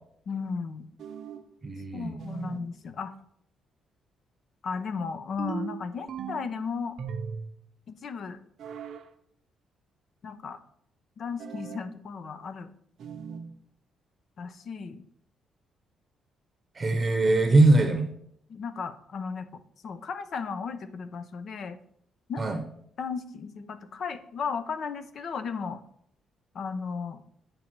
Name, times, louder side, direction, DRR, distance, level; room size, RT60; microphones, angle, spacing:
voice 1, 0.3-0.9 1.9-3.1 4.6-7.0 7.9-8.4 10.2-10.6 11.2-12.7 14.4-15.0 17.5-17.6 18.5-19.5 19.8-21.8 22.3-22.4 23.0-25.8 26.5-27.2, left 5 dB, 55° left, 11 dB, 0.6 m, -35 dB
sound 1, 1.0-1.5 2.2-2.7 5.4-6.6 7.0-7.6 8.6-9.1 11.4-11.9 13.0-13.5, right 7 dB, 70° right, 0.6 m, -38 dB
voice 2, 1.6-2.2 16.7-18.1 22.4-22.6, right 2 dB, 35° right, 4 dB, 0.8 m, -22 dB
8.6 x 5.1 x 3.0 m, 0.69 s
cardioid pair, 90°, 0 cm